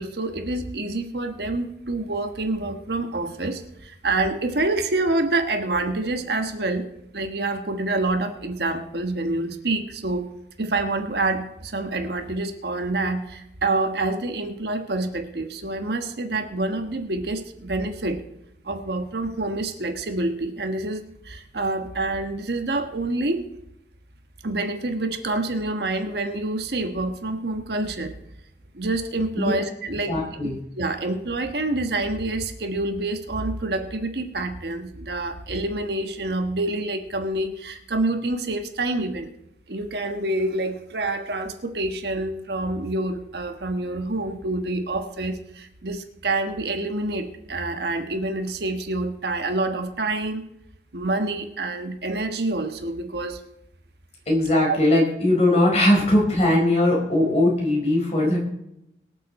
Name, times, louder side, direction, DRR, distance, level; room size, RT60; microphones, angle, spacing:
voice 1, 0.0-6.9 7.1-10.3 10.6-18.2 18.6-23.4 24.4-28.2 28.7-30.2 30.4-39.3 39.7-50.4 50.9-53.4 54.6-54.8, right 2 dB, 65° right, 6 dB, 1.4 m, -27 dB
voice 2, 30.1-30.6 54.3-58.4, left 1 dB, 35° left, -2 dB, 4.7 m, -20 dB
23.0 x 7.7 x 4.2 m, 0.82 s
head